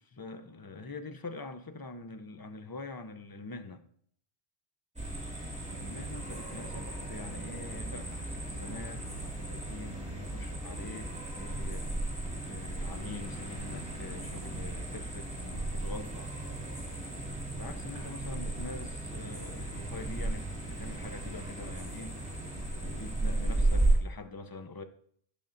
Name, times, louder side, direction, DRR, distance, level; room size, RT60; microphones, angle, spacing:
voice 1, 0.0-3.8 5.7-12.1 12.5-16.3 17.6-22.5 22.8-24.8, left 3 dB, 30° left, 0.5 m, -45 dB
sound 1, 5.0-24.0, right 2 dB, 5° right, 2.2 m, -35 dB
16.0 x 6.8 x 2.6 m
omnidirectional pair, 1.1 m